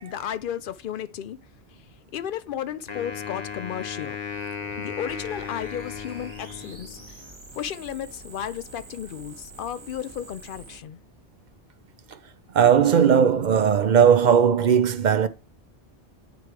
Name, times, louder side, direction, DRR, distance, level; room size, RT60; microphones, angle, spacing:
voice 1, 0.0-1.4 1.7-1.8 2.1-4.2 4.8-7.2 7.5-11.0, left 9 dB, 60° left, 0.6 m, -33 dB
Wind instrument woodwind instrument, 2.9-7.2, left 6 dB, 40° left, 1.1 m, -36 dB
sound 1, 5.1-10.8, right 3 dB, 25° right, 1.2 m, -46 dB
voice 2, 12.5-15.3, right 8 dB, 50° right, 0.6 m, -18 dB
9.3 x 3.3 x 4.6 m
omnidirectional pair, 1.2 m